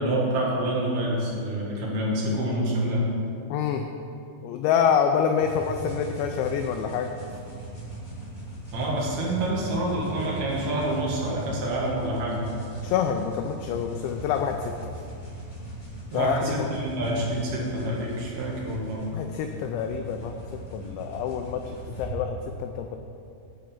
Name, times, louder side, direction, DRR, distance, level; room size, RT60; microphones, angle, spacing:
voice 1, 0.0-3.0 8.7-12.4 16.1-19.0, right 1 dB, 60° right, -4 dB, 3.0 m, -27 dB
voice 2, 3.5-3.9 4.4-7.1 12.8-14.7 16.1-16.7 19.1-20.4 20.7-23.0, left 7 dB, 90° left, 5 dB, 2.6 m, -27 dB
sound 1, 5.4-22.1, right 2 dB, 40° left, 0.6 m, -39 dB
10.5 x 5.0 x 7.1 m, 2.5 s
omnidirectional pair, 5.8 m